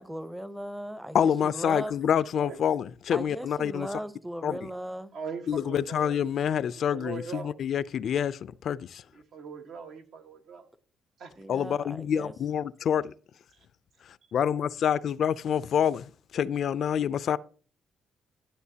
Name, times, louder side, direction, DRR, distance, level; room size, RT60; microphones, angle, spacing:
voice 1, 0.0-1.9 3.1-5.1 11.4-12.3, equal, 5° right, 0.7 m, -37 dB
voice 2, 1.1-3.9 4.4-4.6 5.5-9.0 11.5-13.1 14.3-17.4, left 8 dB, 65° left, 0.4 m, -27 dB
voice 3, 5.1-6.3 6.9-7.5 9.3-10.7 11.2-11.4 13.5-13.7, right 5 dB, 70° right, 1.4 m, -41 dB
11.5 x 7.8 x 2.8 m
cardioid pair, 90°, 0 cm